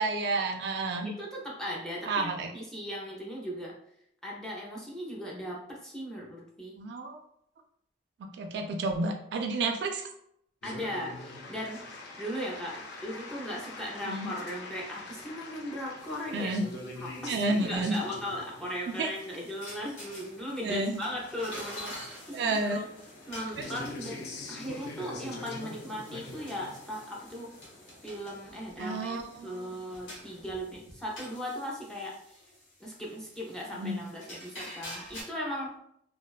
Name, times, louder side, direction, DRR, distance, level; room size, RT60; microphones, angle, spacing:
voice 1, 0.0-1.1 2.1-2.5 6.8-7.2 8.4-10.1 14.0-14.3 16.3-16.7 17.3-18.0 19.0-19.1 20.6-20.9 22.3-22.8 28.8-29.7 33.7-34.0, right 2 dB, 60° right, 4 dB, 0.3 m, -30 dB
voice 2, 1.0-3.8 4.2-6.8 10.6-11.8 12.2-16.5 17.0-22.9 23.3-27.5 28.0-32.4 32.8-35.8, equal, 5° left, -3 dB, 0.5 m, -38 dB
sound 1, 10.6-30.5, left 2 dB, 60° left, 0.4 m, -45 dB
sound 2, 16.0-35.2, equal, 90° left, 0.8 m, -49 dB
2.4 x 2.1 x 2.3 m, 0.72 s
head